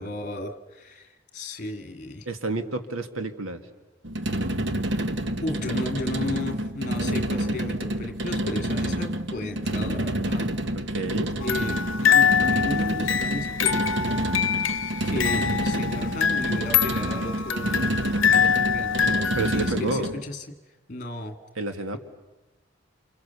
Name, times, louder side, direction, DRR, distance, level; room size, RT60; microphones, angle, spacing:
voice 1, 0.0-2.3 5.4-10.5 11.4-14.2 15.0-17.9 18.3-20.5 20.9-21.4, left 2 dB, 35° left, 6 dB, 2.0 m, -34 dB
voice 2, 2.3-3.6 10.7-11.3 19.4-20.1 21.6-22.0, right 2 dB, 85° right, 8 dB, 2.0 m, -30 dB
sound 1, 4.0-20.2, right 1 dB, 55° right, 1.2 m, -28 dB
sound 2, 11.4-19.7, left 7 dB, 65° left, 0.9 m, -24 dB
29.5 x 27.5 x 7.0 m, 1.1 s
head